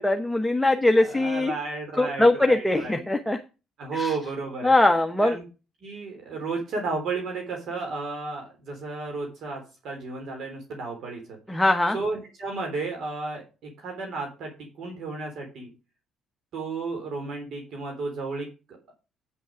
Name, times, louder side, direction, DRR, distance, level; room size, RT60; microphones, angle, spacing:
voice 1, 0.0-1.5 2.0-3.4 4.0-4.1 4.6-5.4 11.5-12.0, left 2 dB, 5° left, 5 dB, 1.1 m, -21 dB
voice 2, 1.0-3.0 3.8-4.7 5.2-5.4 5.8-11.4 11.9-14.5 14.8-15.7 16.5-19.0, right 3 dB, 65° right, 2 dB, 3.6 m, -33 dB
9.6 x 6.2 x 5.1 m, 0.31 s
cardioid pair, 85°, 0 cm